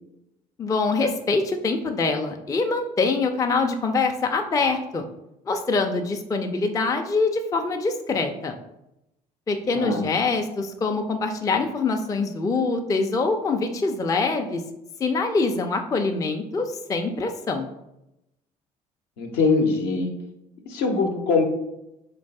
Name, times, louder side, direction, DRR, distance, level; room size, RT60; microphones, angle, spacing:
voice 1, 0.6-5.0 5.5-8.6 9.5-14.6 15.0-17.7, left 3 dB, 15° left, 5 dB, 0.4 m, -24 dB
voice 2, 9.7-10.1 19.2-20.1 20.7-21.4, left 4 dB, 60° left, 3 dB, 0.7 m, -22 dB
3.6 x 3.1 x 2.7 m, 0.86 s
figure-of-eight pair, 50°, 19 cm